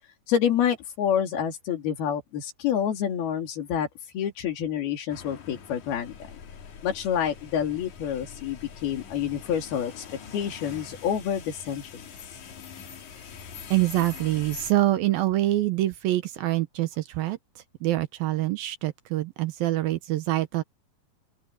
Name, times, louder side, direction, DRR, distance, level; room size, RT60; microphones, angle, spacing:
voice 1, 0.3-3.9 4.1-6.1 6.8-10.0 10.3-12.0, left 9 dB, 85° left, 4.6 m, -28 dB
sound 1, 5.1-14.7, left 5 dB, 55° left, 3.4 m, -44 dB
voice 2, 13.7-20.6, right 16 dB, 80° right, 2.7 m, -25 dB
open air
omnidirectional pair, 4.3 m